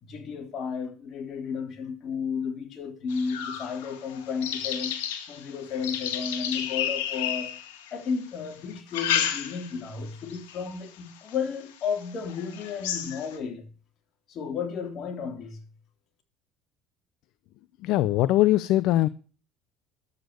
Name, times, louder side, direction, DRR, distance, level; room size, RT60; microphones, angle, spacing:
voice 1, 0.0-5.0 5.3-7.6 7.9-13.7 14.3-15.6, left 6 dB, 50° left, 3.4 m, -33 dB
sound 1, 3.1-8.1 8.7-9.9 10.3-10.7 11.3-11.4 11.8-11.9 12.3-13.4, left 10 dB, 85° left, 2.1 m, -32 dB
voice 2, 17.8-19.1, left 15 dB, 70° left, 0.6 m, -21 dB
11.5 x 8.1 x 6.6 m
supercardioid pair, 85°, 0 cm